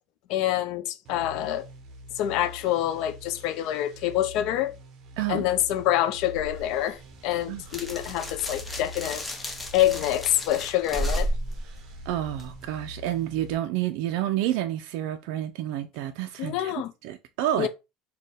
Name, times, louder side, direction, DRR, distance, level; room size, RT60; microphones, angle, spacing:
voice 1, 0.3-1.7 2.1-4.7 5.3-9.2 9.7-11.3 16.4-16.9 17.6-17.7, left 13 dB, 65° left, 0.4 m, -26 dB
sound 1, 1.0-13.5, equal, 50° right, 0.8 m, -45 dB
sound 2, 6.4-12.7, equal, 10° left, 0.6 m, -34 dB
voice 2, 12.1-17.7, right 12 dB, 70° right, 0.3 m, -29 dB
4.2 x 2.2 x 3.3 m
cardioid pair, 135°, 0 cm